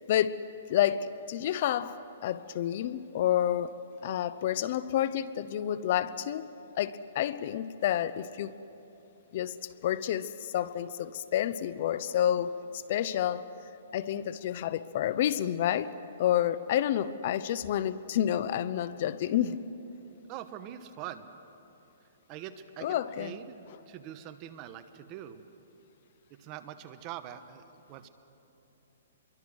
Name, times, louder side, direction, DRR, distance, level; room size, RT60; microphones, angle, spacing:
voice 1, 0.1-6.5 6.8-8.5 9.3-9.6 9.8-13.5 13.9-15.9 16.2-19.6 22.8-23.3, left 11 dB, 50° left, 0.7 m, -29 dB
voice 2, 20.3-21.3 22.3-25.4 26.3-28.1, right 11 dB, 30° right, 1.1 m, -44 dB
27.0 x 23.0 x 6.3 m
hypercardioid pair, 155°, 0 cm